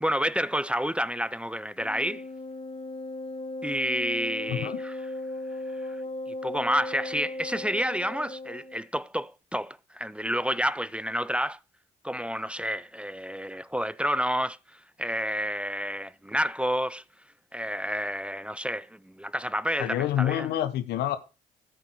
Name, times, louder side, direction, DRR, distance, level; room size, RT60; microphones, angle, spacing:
voice 1, 0.0-2.3 3.6-5.0 5.8-6.0 6.4-11.6 12.0-17.0 17.5-20.5, equal, 5° right, 0.6 m, -29 dB
Wind instrument woodwind instrument, 1.8-8.8, left 1 dB, 40° left, 3.0 m, -36 dB
voice 2, 4.5-4.8 19.8-21.2, left 12 dB, 80° left, 1.3 m, -27 dB
13.5 x 8.0 x 4.7 m
supercardioid pair, 55°, 17 cm